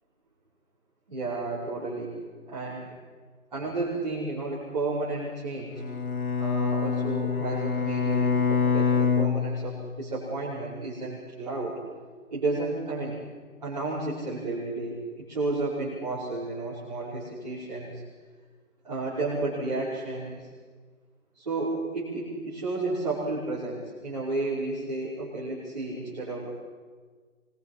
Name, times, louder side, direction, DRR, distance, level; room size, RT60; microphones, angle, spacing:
voice 1, 1.1-2.2 2.5-2.9 3.5-5.8 6.4-11.8 12.3-13.2 13.6-18.0 18.8-20.5 21.3-26.5, right 2 dB, 25° right, -12 dB, 5.5 m, -32 dB
Bowed string instrument, 5.8-10.1, left 6 dB, 80° left, 1.7 m, -26 dB
26.0 x 22.5 x 5.8 m, 1.5 s
figure-of-eight pair, 175°, 43 cm